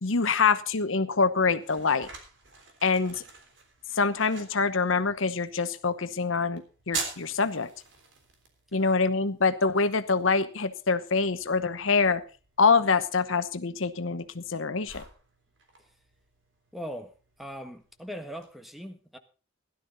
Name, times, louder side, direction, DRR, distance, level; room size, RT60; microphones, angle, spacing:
voice 1, 0.0-2.1 2.8-3.2 3.9-7.7 8.7-12.2 12.6-15.0, left 4 dB, 75° left, 1.0 m, -25 dB
sound 1, 0.9-18.5, right 4 dB, 60° right, 3.6 m, -46 dB
voice 2, 16.7-17.1 17.4-19.2, equal, ahead, 1.4 m, -39 dB
16.5 x 12.0 x 4.0 m
head